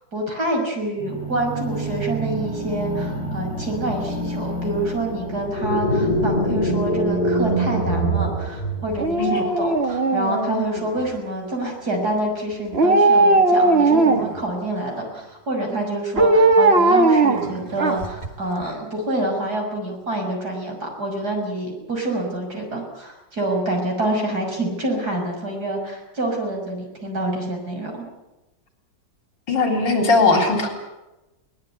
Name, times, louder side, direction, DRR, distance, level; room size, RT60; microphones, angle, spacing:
voice 1, 0.1-28.0, right 1 dB, 55° right, 1 dB, 6.7 m, -27 dB
sound 1, 1.0-10.9, equal, 40° left, 8.1 m, -32 dB
sound 2, 5.6-9.2, right 1 dB, 25° left, 2.7 m, -22 dB
Dog, 9.0-11.0 12.7-14.4 16.2-18.3 18.6-18.7, right 2 dB, 35° right, 1.9 m, -18 dB
voice 2, 29.5-30.7, left 3 dB, 75° left, 3 dB, 4.4 m, -19 dB
21.5 x 20.0 x 9.4 m, 1.0 s
omnidirectional pair, 2.0 m